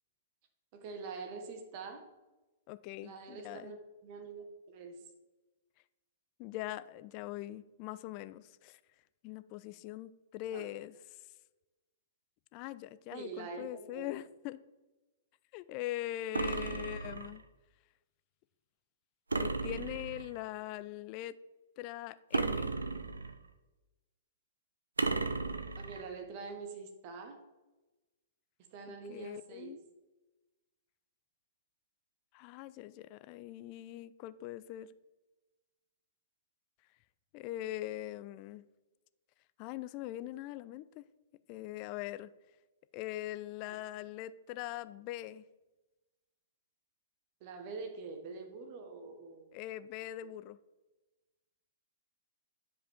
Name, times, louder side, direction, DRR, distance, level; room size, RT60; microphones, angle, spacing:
voice 1, 0.7-2.1 3.0-5.0 10.5-10.6 13.1-14.1 16.6-16.8 25.8-27.4 28.7-29.8 43.7-43.8 47.4-49.5, right 4 dB, 35° right, 6 dB, 1.1 m, -45 dB
voice 2, 2.7-3.8 6.4-8.8 9.2-11.0 12.5-14.6 15.5-17.4 19.3-21.4 21.8-22.7 28.9-29.8 32.3-34.9 37.3-38.6 39.6-41.0 41.5-42.3 42.9-45.4 49.5-50.6, left 14 dB, 35° left, 16 dB, 0.3 m, -42 dB
sound 1, 16.3-17.4 19.3-20.4 22.3-23.5 25.0-26.0, right 3 dB, 75° right, 0.5 m, -34 dB
9.6 x 5.0 x 3.5 m, 1.1 s
figure-of-eight pair, 110°, 0 cm